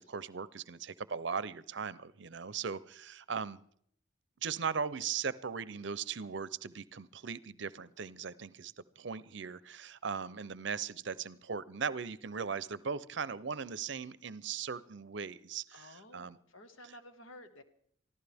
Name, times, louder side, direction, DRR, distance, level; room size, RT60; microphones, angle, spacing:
voice 1, 0.0-3.6 4.4-16.4, right 6 dB, 60° right, 17 dB, 0.6 m, -38 dB
voice 2, 15.7-17.6, left 1 dB, 80° left, 8 dB, 1.5 m, -53 dB
24.5 x 15.0 x 3.5 m, 0.66 s
head